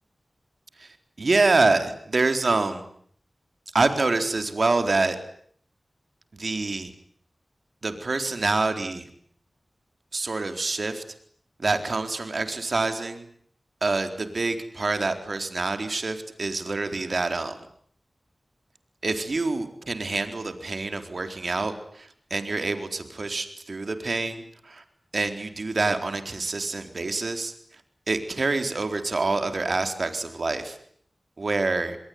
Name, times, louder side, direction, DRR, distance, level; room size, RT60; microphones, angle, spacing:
voice 1, 0.8-2.8 3.7-5.2 6.3-6.9 7.8-9.1 10.1-11.0 11.6-13.2 13.8-17.6 19.0-24.8 25.1-27.5 28.1-30.8 31.4-32.0, right 3 dB, 65° right, 8 dB, 4.1 m, -26 dB
27.5 x 22.0 x 9.7 m, 0.62 s
cardioid pair, 45°, 0 cm